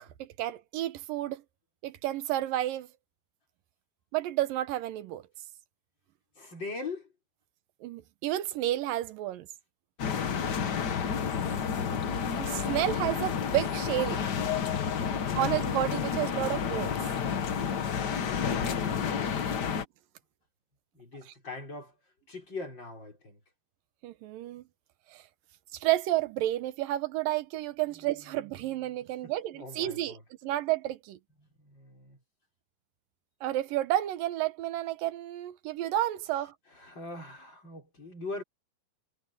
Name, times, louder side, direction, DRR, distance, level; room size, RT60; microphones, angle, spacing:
voice 1, 0.0-1.4 1.8-2.9 4.1-5.2 7.8-9.5 12.4-14.2 15.3-17.0 24.0-24.6 25.1-25.2 25.8-30.2 30.4-31.2 33.4-36.5, right 14 dB, 85° right, 2.7 m, -31 dB
voice 2, 6.4-7.1 20.9-21.9 22.3-23.4 27.9-29.0 29.2-30.2 31.4-32.2 36.7-38.4, left 3 dB, 30° left, 6.0 m, -43 dB
sound 1, 10.0-19.9, left 7 dB, 75° left, 0.9 m, -30 dB
omnidirectional pair, 3.9 m